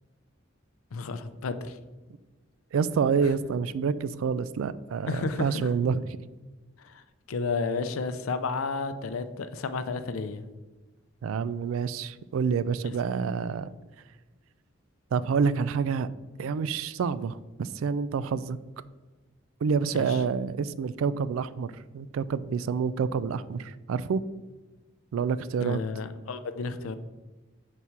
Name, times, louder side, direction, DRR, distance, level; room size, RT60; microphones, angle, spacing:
voice 1, 0.9-1.8 5.1-5.7 6.8-10.4 19.9-20.2 25.6-27.0, left 4 dB, 90° left, 0.5 m, -32 dB
voice 2, 2.7-6.0 11.2-13.7 15.1-16.1 16.4-18.6 19.6-24.2 25.1-25.8, right 6 dB, 80° right, 0.3 m, -28 dB
5.7 x 4.1 x 4.7 m
head